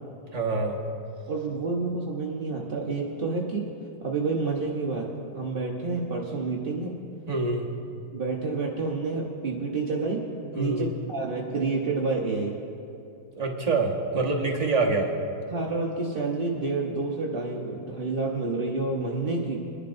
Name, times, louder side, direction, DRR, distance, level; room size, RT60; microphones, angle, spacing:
voice 1, 0.3-0.8 7.3-7.8 10.5-10.9 13.3-15.1, right 3 dB, 25° right, -1 dB, 0.9 m, -26 dB
voice 2, 1.3-3.7 4.0-5.1 5.3-6.9 8.1-10.2 10.5-12.6 15.5-19.6, right 3 dB, 55° right, -3 dB, 0.6 m, -29 dB
23.5 x 11.0 x 2.6 m, 2.6 s
omnidirectional pair, 2.3 m